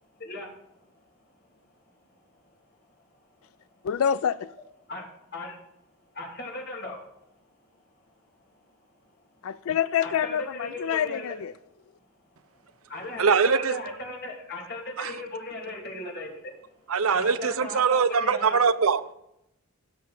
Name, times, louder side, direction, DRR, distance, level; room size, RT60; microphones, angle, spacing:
voice 1, 3.8-4.5 9.4-11.5, left 8 dB, 75° left, 0.4 m, -27 dB
voice 2, 6.1-7.0 10.0-11.3 12.9-16.5 17.1-18.6, left 2 dB, 50° left, 2.9 m, -37 dB
voice 3, 13.2-13.8 15.0-15.1 16.9-19.1, right 5 dB, 80° right, 0.7 m, -22 dB
16.0 x 6.3 x 4.3 m
head